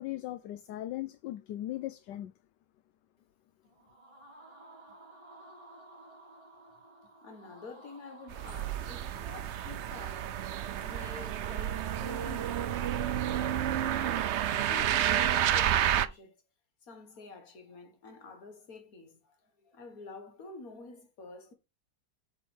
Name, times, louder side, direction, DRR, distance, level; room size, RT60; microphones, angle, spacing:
voice 1, 0.0-2.3, left 14 dB, 80° left, 1.3 m, -38 dB
sound 1, 3.6-14.5, right 1 dB, 20° right, 2.5 m, -55 dB
voice 2, 7.2-10.3 10.8-13.1 14.6-16.3 16.8-21.5, left 3 dB, 55° left, 2.0 m, -48 dB
sound 2, 8.3-16.1, right 11 dB, 80° right, 0.6 m, -30 dB
8.0 x 4.1 x 6.2 m
omnidirectional pair, 1.8 m